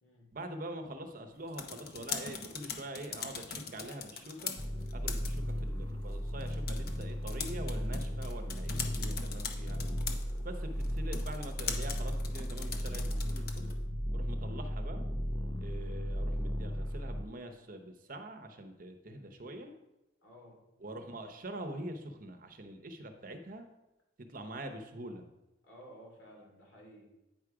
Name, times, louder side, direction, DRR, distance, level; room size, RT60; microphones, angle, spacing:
voice 1, 0.3-4.6 4.9-9.8 10.4-13.7 14.1-15.1 15.6-19.7 20.8-23.7 24.3-25.2, right 1 dB, 45° right, 7 dB, 0.8 m, -44 dB
sound 1, 1.3-13.8, left 6 dB, 50° left, 0.8 m, -43 dB
sound 2, 4.6-17.2, equal, 15° left, 0.6 m, -35 dB
voice 2, 10.2-10.6 20.2-20.6 25.6-27.1, equal, 75° left, -1 dB, 2.5 m, -54 dB
9.2 x 4.8 x 4.8 m, 0.96 s
head